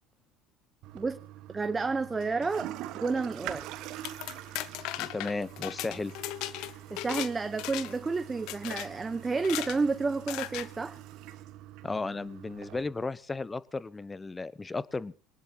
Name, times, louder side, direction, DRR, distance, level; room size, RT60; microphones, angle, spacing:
Toilet flush, 0.8-12.8, right 14 dB, 60° right, 1.5 m, -45 dB
voice 1, 1.5-3.7 6.9-11.0, right 4 dB, 20° right, 11 dB, 1.1 m, -30 dB
sound 1, 3.8-7.3 7.6-8.1 8.5-8.9 9.4-9.8 10.3-10.7, left 16 dB, 60° left, 1.0 m, -37 dB
voice 2, 5.0-6.1 11.8-15.1, left 3 dB, 20° left, 19 dB, 1.1 m, -34 dB
24.0 x 18.5 x 3.0 m, 0.38 s
figure-of-eight pair, 65°, 0 cm